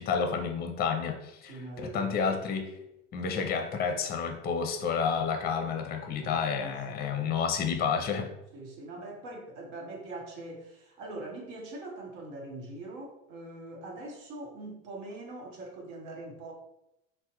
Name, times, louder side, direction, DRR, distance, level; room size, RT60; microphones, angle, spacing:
voice 1, 0.0-2.7 3.1-8.3, left 6 dB, 30° left, 5 dB, 0.5 m, -30 dB
voice 2, 1.4-2.4 3.4-3.5 6.2-6.8 7.1-7.3 8.5-16.5, right 2 dB, 75° right, 1 dB, 1.0 m, -43 dB
3.3 x 2.1 x 2.9 m, 0.84 s
supercardioid pair, 100°, 35 cm